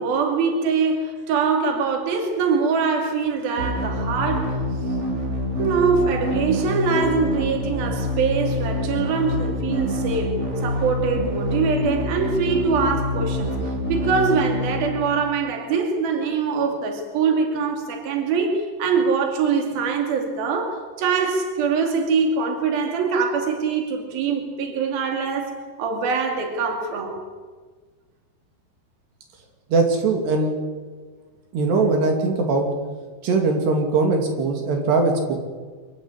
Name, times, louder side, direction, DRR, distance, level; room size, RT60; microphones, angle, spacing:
voice 1, 0.0-4.6 5.6-10.4 10.6-13.6 13.9-27.2, right 5 dB, 65° right, 4 dB, 4.4 m, -23 dB
sound 1, 3.6-15.5, left 1 dB, 30° right, 1.3 m, -26 dB
voice 2, 29.7-30.5 31.5-32.7 33.2-35.4, right 3 dB, 80° right, 3 dB, 4.8 m, -20 dB
25.0 x 15.5 x 9.9 m, 1.4 s
omnidirectional pair, 4.7 m